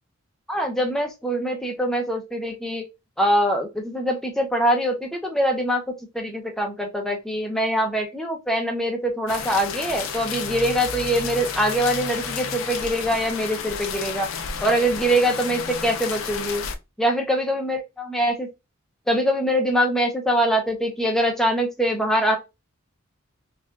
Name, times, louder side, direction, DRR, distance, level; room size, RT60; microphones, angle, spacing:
voice 1, 0.5-2.8 3.2-5.8 6.1-14.3 14.6-16.6 17.0-17.8 18.1-18.5 19.1-22.4, equal, ahead, 1 dB, 0.6 m, -23 dB
sound 1, 9.3-16.7, left 6 dB, 70° left, 0.5 m, -31 dB
5.3 x 2.4 x 2.4 m, 0.25 s
head